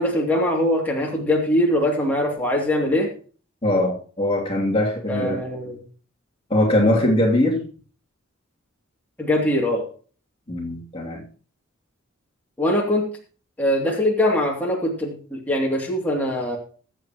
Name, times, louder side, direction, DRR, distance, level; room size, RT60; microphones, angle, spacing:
voice 1, 0.0-3.1 5.1-5.8 9.2-9.8 12.6-13.0 13.6-16.6, left 1 dB, 10° left, -3 dB, 2.7 m, -22 dB
voice 2, 3.6-5.4 6.5-7.6 10.5-11.2, left 1 dB, 25° left, -2 dB, 2.9 m, -21 dB
22.5 x 7.9 x 3.0 m, 0.39 s
head